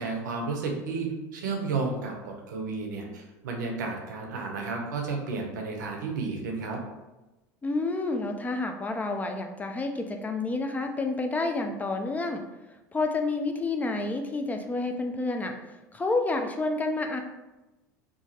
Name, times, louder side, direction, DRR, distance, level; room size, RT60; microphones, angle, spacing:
voice 1, 0.0-6.8, right 4 dB, 85° right, 2 dB, 0.6 m, -32 dB
voice 2, 7.6-12.4 12.9-17.2, left 3 dB, 15° left, 5 dB, 0.3 m, -29 dB
2.8 x 2.4 x 2.8 m, 1.1 s
hypercardioid pair, 85°, 10 cm